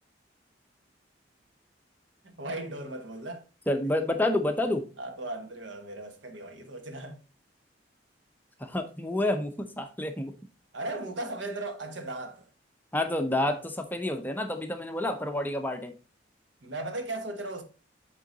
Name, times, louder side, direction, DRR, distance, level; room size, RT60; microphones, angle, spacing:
voice 1, 2.2-3.4 5.0-7.2 10.7-12.5 16.6-17.6, right 2 dB, 75° right, 1.2 m, -37 dB
voice 2, 3.7-4.8 8.6-10.3 12.9-15.9, left 1 dB, 10° left, 0.6 m, -29 dB
8.1 x 3.8 x 3.9 m
head